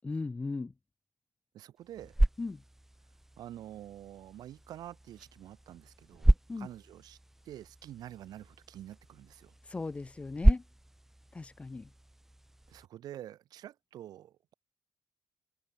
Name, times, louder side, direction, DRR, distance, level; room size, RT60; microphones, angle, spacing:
voice 1, 0.0-0.7 2.4-2.6 6.5-6.7 9.7-10.6 11.3-11.9, left 3 dB, 15° left, 2.5 m, -37 dB
voice 2, 1.5-2.2 3.4-7.2 7.4-9.5 12.7-14.5, right 12 dB, 70° right, 3.5 m, -47 dB
sound 1, 1.8-12.9, right 1 dB, 5° right, 0.9 m, -32 dB
cardioid pair, 165°, 7 cm